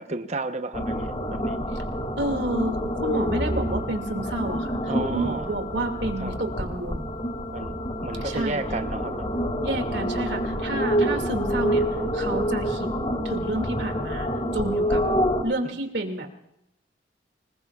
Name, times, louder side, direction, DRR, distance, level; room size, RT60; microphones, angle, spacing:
voice 1, 0.0-1.6 4.9-5.5 6.2-6.4 7.5-9.4 10.7-10.8 15.6-15.8, right 3 dB, 40° right, 8 dB, 1.0 m, -33 dB
sound 1, 0.7-15.4, equal, 35° left, 2.4 m, -27 dB
voice 2, 2.2-4.8 5.1-7.1 8.2-8.6 9.6-12.9 13.2-15.0 15.4-16.3, right 1 dB, 80° right, 4 dB, 2.4 m, -30 dB
26.0 x 20.5 x 2.5 m, 0.82 s
head